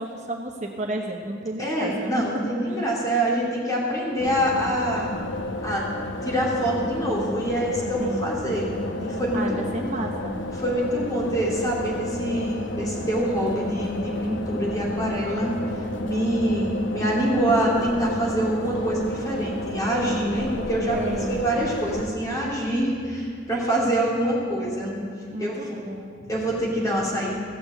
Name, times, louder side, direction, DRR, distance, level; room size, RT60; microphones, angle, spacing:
voice 1, 0.0-2.1 2.6-2.8 8.0-8.3 9.3-10.4 20.9-21.4 25.3-26.1, right 1 dB, 40° right, 2 dB, 0.9 m, -32 dB
voice 2, 1.6-5.1 5.6-5.9 6.2-9.6 10.5-15.6 16.0-25.0 25.4-25.8 26.3-27.3, right 1 dB, 20° left, -5 dB, 3.2 m, -25 dB
sound 1, 4.2-22.1, left 2 dB, 90° left, 0.9 m, -32 dB
16.0 x 6.9 x 7.9 m, 2.2 s
head